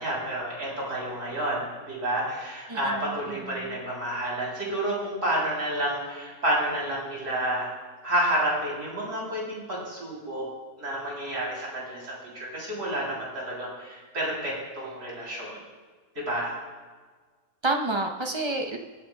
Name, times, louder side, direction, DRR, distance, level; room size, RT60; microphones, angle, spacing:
voice 1, 0.0-7.7 8.0-10.5 10.8-15.6 16.3-16.6, right 1 dB, 55° right, -5 dB, 3.7 m, -30 dB
voice 2, 2.7-3.8 17.6-18.8, right 2 dB, 30° right, 3 dB, 0.5 m, -30 dB
22.5 x 8.6 x 2.3 m, 1.4 s
omnidirectional pair, 1.6 m